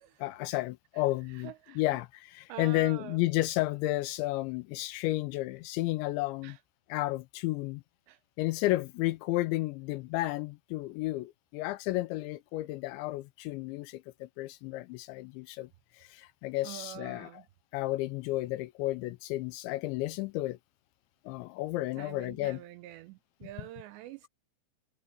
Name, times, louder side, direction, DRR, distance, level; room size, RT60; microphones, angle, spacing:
voice 1, 0.2-6.6 6.9-7.8 8.4-15.7 15.9-17.4 17.7-20.6 21.3-22.6 23.6-23.7, left 18 dB, 80° left, 2.8 m, -32 dB
voice 2, 1.4-2.0 2.5-3.2 6.4-6.6 8.1-8.2 16.6-17.4 22.0-24.3, right 15 dB, 80° right, 2.6 m, -45 dB
omnidirectional pair, 5.5 m